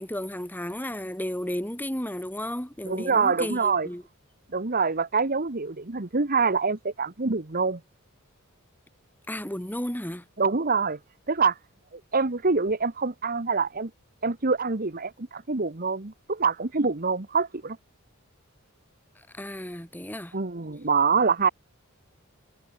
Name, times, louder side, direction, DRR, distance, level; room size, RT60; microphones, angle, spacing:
voice 1, 0.0-4.0 9.3-10.2 19.3-20.3, left 1 dB, 10° left, 3.4 m, -33 dB
voice 2, 2.8-3.9 4.5-7.8 10.4-11.0 11.3-11.6 11.9-13.9 14.2-17.8 20.3-21.5, right 4 dB, 45° right, 1.3 m, -25 dB
head